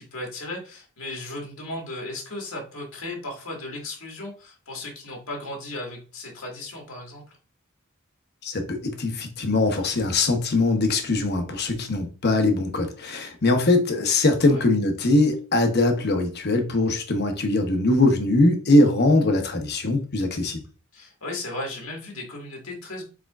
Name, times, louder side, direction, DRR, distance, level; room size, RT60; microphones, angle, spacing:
voice 1, 0.0-7.4 14.4-14.6 20.9-23.0, left 2 dB, 85° left, 1.9 m, -36 dB
voice 2, 8.4-20.6, left 2 dB, 50° left, 0.9 m, -21 dB
4.8 x 4.3 x 2.4 m
head